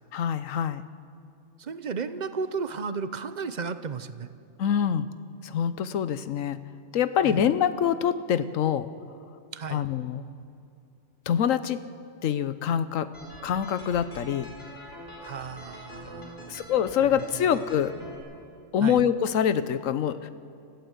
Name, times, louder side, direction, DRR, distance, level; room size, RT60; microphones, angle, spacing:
voice 1, 0.1-0.8 4.6-5.1 5.4-6.6 6.9-8.9 9.7-10.3 11.3-11.8 12.2-13.1 13.4-14.5 16.5-17.9 18.7-20.3, left 8 dB, 80° left, 13 dB, 1.2 m, -25 dB
voice 2, 1.6-4.3 7.2-7.5 9.5-9.8 15.2-16.7 17.0-17.1 18.8-19.0, right 5 dB, 40° right, 12 dB, 0.7 m, -34 dB
sound 1, 13.1-18.2, equal, 50° left, 4.5 m, -44 dB
26.5 x 14.5 x 8.1 m, 2.5 s
omnidirectional pair, 1.3 m